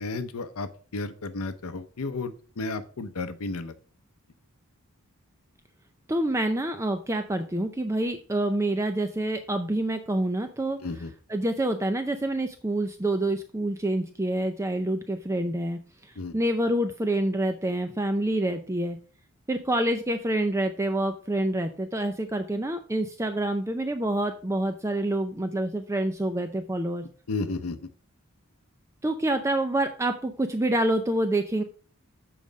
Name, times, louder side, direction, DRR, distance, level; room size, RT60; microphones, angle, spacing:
voice 1, 0.0-3.7 10.8-11.1 16.2-16.3 27.3-27.9, left 3 dB, 75° left, 10 dB, 0.7 m, -33 dB
voice 2, 6.1-11.0 11.3-19.0 19.5-27.0 29.0-31.6, right 1 dB, 15° right, 7 dB, 0.5 m, -27 dB
7.5 x 5.0 x 5.1 m, 0.40 s
head